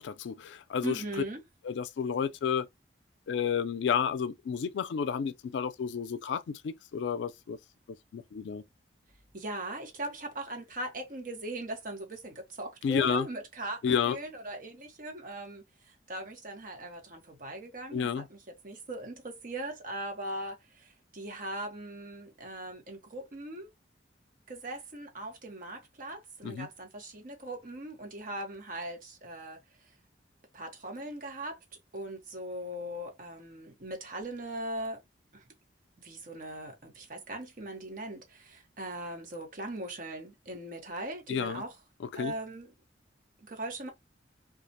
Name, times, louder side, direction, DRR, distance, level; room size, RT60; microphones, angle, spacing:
voice 1, 0.0-1.0 1.6-2.7 3.3-7.6 8.1-8.6 12.8-13.3 13.8-14.2 17.9-18.3 26.4-26.7 41.3-41.6 42.0-42.3, left 7 dB, 75° left, 0.3 m, -31 dB
voice 2, 0.8-1.4 9.3-18.4 18.6-23.7 24.5-29.6 30.5-31.6 31.9-35.0 35.3-35.4 36.0-41.7 42.1-42.7 43.4-43.9, right 1 dB, 50° right, 0.8 m, -40 dB
2.3 x 2.0 x 2.6 m
head